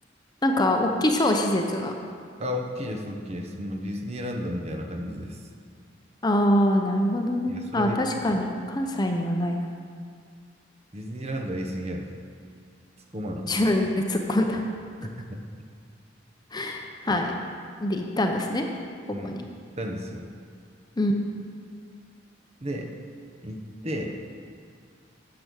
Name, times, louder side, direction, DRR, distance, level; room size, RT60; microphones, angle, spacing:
voice 1, 0.4-1.9 6.2-9.6 13.5-14.6 16.5-17.4 17.8-18.7 19.2-19.4 21.0-21.2, left 1 dB, 20° left, 3 dB, 0.7 m, -24 dB
voice 2, 2.4-5.4 7.5-8.0 8.3-8.4 10.9-12.1 13.1-13.5 15.2-15.4 17.1-17.2 19.1-19.3 19.8-20.2 22.6-22.9 23.4-24.2, equal, 35° right, 2 dB, 1.0 m, -33 dB
9.8 x 6.9 x 6.3 m, 2.1 s
head